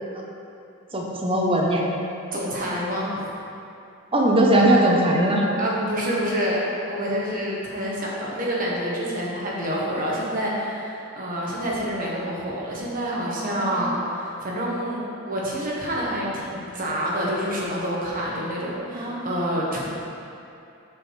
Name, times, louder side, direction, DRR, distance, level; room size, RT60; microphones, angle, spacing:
voice 1, 0.9-1.8 4.1-5.4 13.4-13.8 18.9-19.3, right 1 dB, 25° right, -2 dB, 0.9 m, -20 dB
voice 2, 2.3-3.1 5.6-6.6 6.9-15.0 15.3-19.8, equal, 45° right, -5 dB, 1.4 m, -27 dB
6.3 x 6.2 x 4.8 m, 2.7 s
head